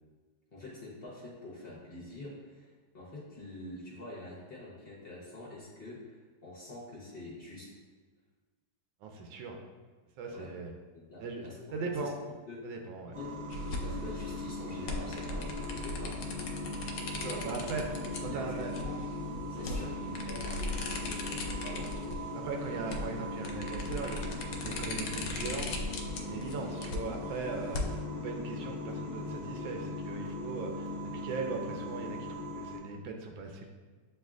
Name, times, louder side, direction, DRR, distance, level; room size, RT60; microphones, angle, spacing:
voice 1, 0.5-7.8 10.3-10.5 10.9-12.1 12.5-12.7 13.1-13.3 13.8-16.4 17.2-17.5 17.8-17.9 18.3-19.0 19.5-21.9, left 2 dB, 40° left, -6 dB, 0.9 m, -46 dB
voice 2, 9.0-9.6 10.2-10.7 11.2-12.1 12.6-13.2 17.1-17.8 18.3-18.7 19.5-19.9 22.3-25.8 26.2-28.0 28.2-32.2 32.5-33.7, right 4 dB, 85° right, 2 dB, 1.3 m, -39 dB
sound 1, 13.1-32.8, left 1 dB, 20° right, 0.7 m, -39 dB
sound 2, 13.5-28.0, left 2 dB, 75° left, 1.2 m, -39 dB
7.7 x 2.8 x 2.4 m, 1.4 s
omnidirectional pair, 2.1 m